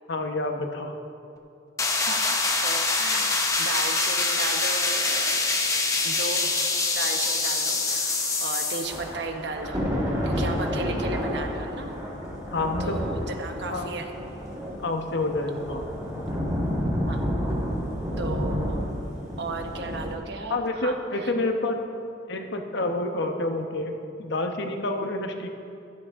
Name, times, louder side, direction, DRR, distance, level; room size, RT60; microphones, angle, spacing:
voice 1, 0.1-1.0 12.5-13.0 13.7-13.9 14.8-15.9 16.1-16.3 20.5-21.8 22.3-25.5, left 2 dB, 60° left, 4 dB, 1.0 m, -28 dB
sound 1, 1.8-9.0, left 3 dB, 15° left, 0.9 m, -25 dB
voice 2, 2.1-5.6 6.0-6.4 6.9-9.8 10.2-11.9 12.8-14.1 17.1-17.2 18.2-18.9 19.4-21.3, right 3 dB, 60° right, 4 dB, 1.1 m, -35 dB
Thunder / Rain, 8.8-20.1, equal, 20° right, 2.9 m, -30 dB
15.0 x 12.5 x 3.6 m, 2.7 s
head